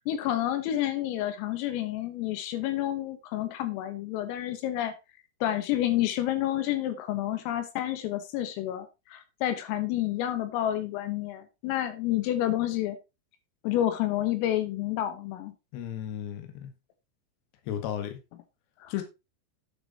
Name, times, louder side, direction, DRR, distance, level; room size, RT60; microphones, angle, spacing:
voice 1, 0.1-4.9 5.4-13.0 13.6-15.5 18.8-18.9, left 13 dB, 85° left, 3.8 m, -29 dB
voice 2, 15.7-16.7 17.6-18.2 18.9-19.0, left 10 dB, 65° left, 3.4 m, -34 dB
9.8 x 6.9 x 4.0 m
omnidirectional pair, 5.8 m